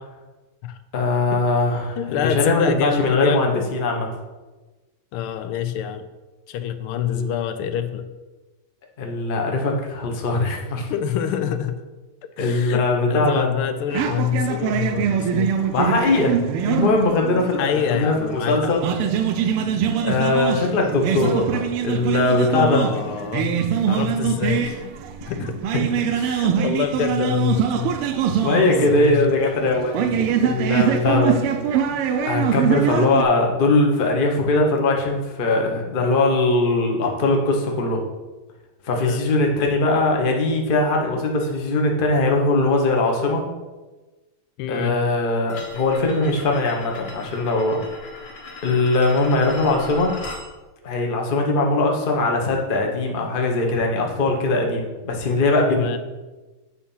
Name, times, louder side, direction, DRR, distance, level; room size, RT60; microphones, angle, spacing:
voice 1, 0.9-4.1 7.1-7.3 9.0-10.9 12.4-13.5 15.7-16.4 16.6-18.8 20.0-22.8 28.4-31.4 32.2-38.0 38.8-43.4 44.7-47.8 48.6-50.1 50.8-56.0, left 2 dB, 35° left, 1 dB, 0.8 m, -21 dB
voice 2, 2.0-3.7 5.1-6.0 6.5-8.1 10.9-11.8 12.4-15.5 17.6-18.7 22.5-23.5 23.9-24.9 25.3-25.6 26.1-27.9 28.4-28.5 28.9-29.2 30.9-31.3 38.9-39.2 44.6-45.0 55.7-56.0, left 9 dB, 80° left, 10 dB, 1.5 m, -26 dB
sound 1, 13.9-18.3 18.5-33.2, right 8 dB, 85° right, 1.6 m, -23 dB
sound 2, 45.5-50.5, left 3 dB, 65° left, 2.1 m, -38 dB
8.3 x 4.3 x 5.5 m, 1.2 s
omnidirectional pair, 2.4 m